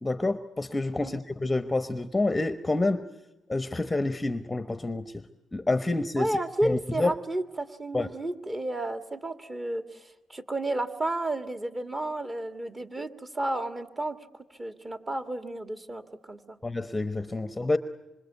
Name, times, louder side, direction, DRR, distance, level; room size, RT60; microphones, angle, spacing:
voice 1, 0.0-3.1 3.5-5.1 5.5-6.3 6.6-7.1 7.9-8.1 16.6-17.8, left 2 dB, 15° left, 11 dB, 1.0 m, -28 dB
voice 2, 6.2-14.2 14.6-16.6, right 1 dB, 25° right, 8 dB, 2.1 m, -32 dB
26.5 x 26.0 x 8.2 m, 0.99 s
cardioid pair, 90°, 0 cm